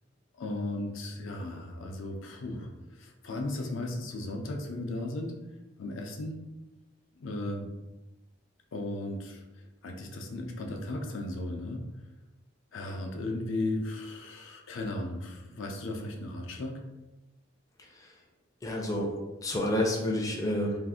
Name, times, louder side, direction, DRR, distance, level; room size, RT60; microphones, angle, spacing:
voice 1, 0.4-5.4 5.8-6.4 7.2-7.7 8.7-11.8 12.7-16.8, left 2 dB, 75° left, 2 dB, 0.5 m, -36 dB
voice 2, 18.6-19.1 19.4-20.8, left 1 dB, 15° left, -1 dB, 0.4 m, -29 dB
2.6 x 2.4 x 3.5 m, 1.1 s
head